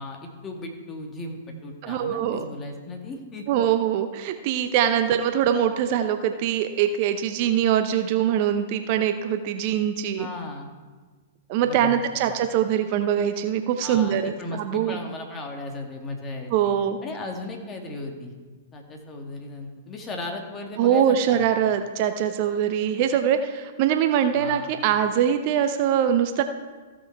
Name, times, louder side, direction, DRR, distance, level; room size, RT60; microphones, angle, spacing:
voice 1, 0.0-3.5 10.2-10.7 11.6-12.3 13.8-16.5 17.0-18.3 18.7-21.5 24.4-24.7, left 2 dB, 20° left, 2 dB, 1.9 m, -36 dB
voice 2, 1.8-2.4 3.5-10.3 11.5-15.0 16.5-17.0 20.8-26.4, right 9 dB, 45° right, 8 dB, 0.7 m, -23 dB
15.0 x 6.2 x 4.6 m, 1.4 s
figure-of-eight pair, 105°, 0 cm